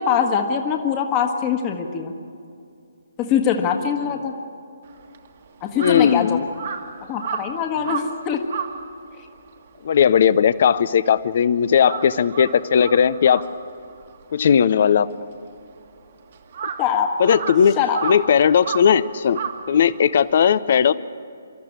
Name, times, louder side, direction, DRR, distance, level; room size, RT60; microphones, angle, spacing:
voice 1, 0.0-2.1 3.2-4.3 5.6-6.4 7.1-8.4 16.8-17.2 17.8-18.0, left 7 dB, 25° left, 4 dB, 1.5 m, -22 dB
Crow, 4.8-11.4 11.7-20.3, right 6 dB, 50° right, 1.8 m, -34 dB
voice 2, 5.7-6.4 9.8-13.4 14.3-15.1 17.2-17.7 18.0-19.4 19.7-20.9, left 8 dB, 50° left, 16 dB, 0.6 m, -17 dB
25.5 x 13.5 x 8.8 m, 2.4 s
figure-of-eight pair, 140°, 0 cm